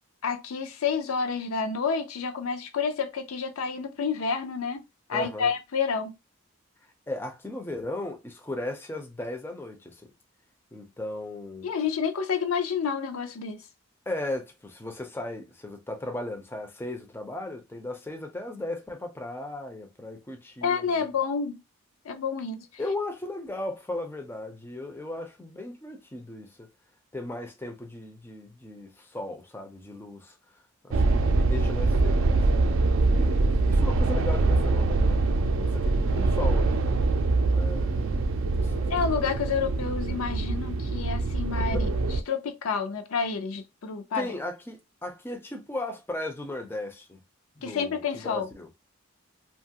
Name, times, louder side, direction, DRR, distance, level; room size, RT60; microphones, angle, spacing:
voice 1, 0.2-4.8 5.1-6.1 11.6-13.6 20.6-21.6 22.0-22.7 38.9-41.9 42.3-44.3 47.6-48.5, left 6 dB, 80° left, 0.5 m, -29 dB
voice 2, 5.1-5.5 7.1-10.1 10.7-11.7 14.1-21.1 22.8-26.7 27.1-30.3 30.8-32.4 33.1-36.9 37.5-38.1 38.6-38.9 41.7-41.8 44.1-47.2 47.6-48.7, left 1 dB, 10° left, 0.4 m, -36 dB
sound 1, 30.9-42.2, right 3 dB, 65° right, 0.4 m, -24 dB
2.8 x 2.3 x 2.8 m
head